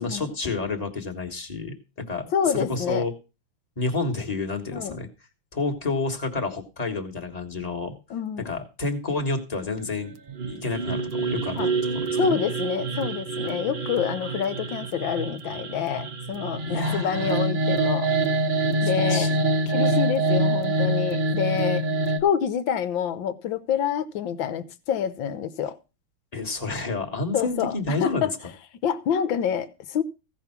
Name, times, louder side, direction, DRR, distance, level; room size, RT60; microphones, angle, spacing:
voice 1, 0.0-3.1 3.8-5.1 5.5-8.0 8.4-10.1 10.5-11.6 11.9-12.4 16.7-17.4 18.8-19.4 26.3-28.3, left 3 dB, 20° left, 1.5 m, -30 dB
voice 2, 2.3-3.0 4.7-5.0 8.1-8.5 11.5-11.7 12.2-18.1 18.8-19.3 19.7-21.8 22.2-25.8 27.3-28.3 28.8-30.0, left 8 dB, 70° left, 1.6 m, -27 dB
sound 1, 10.3-22.2, right 2 dB, 50° right, 0.6 m, -26 dB
15.5 x 5.5 x 5.9 m
omnidirectional pair, 2.3 m